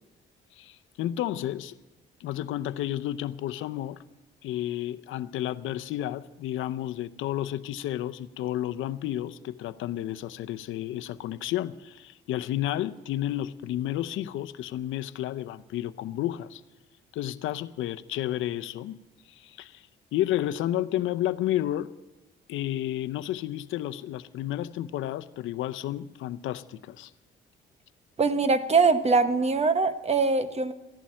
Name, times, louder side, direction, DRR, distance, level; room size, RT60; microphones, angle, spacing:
voice 1, 0.5-1.8 2.2-4.0 4.4-16.6 17.1-19.0 19.3-19.9 20.1-21.9 22.5-27.1, left 13 dB, 85° left, 0.6 m, -31 dB
voice 2, 28.2-30.7, right 4 dB, 30° right, 1.1 m, -22 dB
15.0 x 11.5 x 7.5 m
cardioid pair, 90°, 20 cm